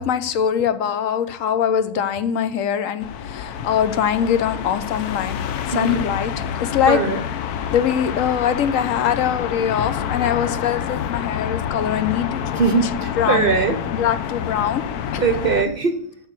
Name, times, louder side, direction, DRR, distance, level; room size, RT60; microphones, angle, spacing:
voice 1, 0.0-7.0 7.7-12.9 13.2-13.5 13.9-14.8 15.1-15.2, left 9 dB, 65° left, 12 dB, 1.0 m, -22 dB
sound 1, 3.0-15.7, left 8 dB, 90° left, 1.2 m, -28 dB
voice 2, 6.9-7.2 12.6-13.8 15.2-15.9, right 5 dB, 50° right, 8 dB, 0.8 m, -20 dB
7.0 x 6.7 x 7.7 m, 0.70 s
omnidirectional pair, 1.6 m